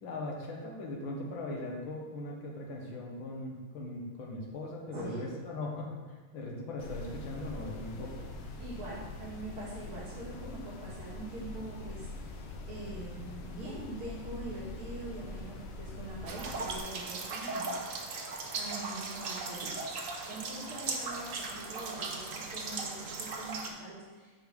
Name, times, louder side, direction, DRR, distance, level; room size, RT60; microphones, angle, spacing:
voice 1, 0.0-6.0 6.3-8.2, left 2 dB, 65° left, -1 dB, 2.0 m, -39 dB
voice 2, 4.9-5.3 8.0-8.1 8.6-17.8 18.2-19.7 20.3-24.3, right 2 dB, 85° right, -6 dB, 2.6 m, -44 dB
sound 1, 6.8-16.8, left 3 dB, 85° left, 1.7 m, -43 dB
sound 2, 16.3-23.7, right 3 dB, 60° right, 0.9 m, -38 dB
6.1 x 5.8 x 5.1 m, 1.3 s
omnidirectional pair, 2.3 m